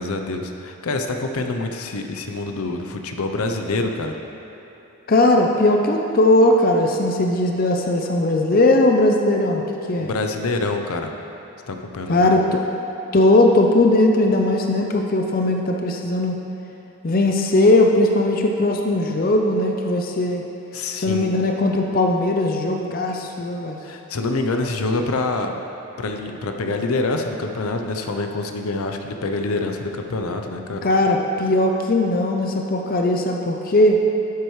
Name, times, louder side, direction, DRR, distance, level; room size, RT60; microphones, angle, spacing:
voice 1, 0.0-4.1 10.0-11.1 11.7-12.3 20.7-21.3 23.8-25.6 26.0-30.8, left 2 dB, 80° left, 5 dB, 0.6 m, -26 dB
voice 2, 5.1-9.6 9.9-10.1 12.1-12.6 13.1-16.4 17.0-20.4 21.0-23.8 30.8-34.0, left 1 dB, 40° left, 2 dB, 0.5 m, -18 dB
11.5 x 7.9 x 3.2 m, 3.0 s
head